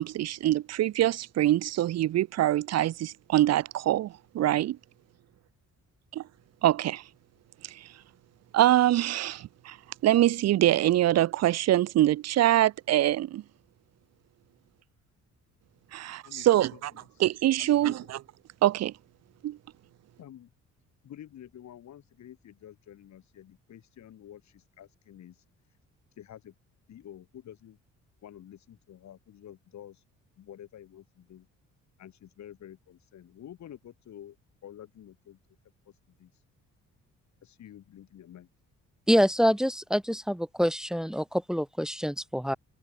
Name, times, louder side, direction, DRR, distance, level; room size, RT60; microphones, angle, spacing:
voice 1, 0.0-4.8 6.1-6.2 6.6-7.0 7.6-7.9 8.5-9.8 10.0-13.4 15.9-16.7 17.2-18.2 18.6-18.9 19.4-19.6, right 13 dB, 60° right, 0.6 m, -24 dB
voice 2, 15.9-17.2 17.6-18.1 20.2-20.5 21.0-25.8 26.1-26.5 26.9-27.8 28.2-30.0 30.4-31.5 32.0-34.4 34.6-35.4 35.8-36.4 37.4-38.5, left 11 dB, 65° left, 3.1 m, -49 dB
voice 3, 39.1-42.6, equal, ahead, 1.1 m, -26 dB
cardioid pair, 90°, 30 cm